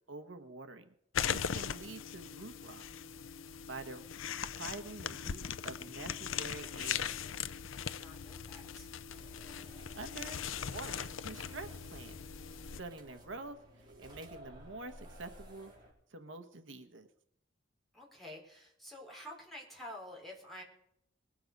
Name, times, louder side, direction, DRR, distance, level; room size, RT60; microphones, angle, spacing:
voice 1, 0.1-0.9 1.3-2.8 3.7-4.0 4.6-7.1 9.6-10.4 10.7-12.2 12.8-15.7 16.1-17.1, right 3 dB, 70° right, 7 dB, 1.1 m, -47 dB
sound 1, 1.1-12.8, left 8 dB, 85° left, 0.6 m, -40 dB
voice 2, 7.7-8.9 17.9-20.6, left 1 dB, ahead, -3 dB, 4.0 m, -49 dB
sound 2, 9.1-15.9, right 1 dB, 20° right, 4.1 m, -55 dB
21.0 x 7.8 x 5.3 m, 0.77 s
head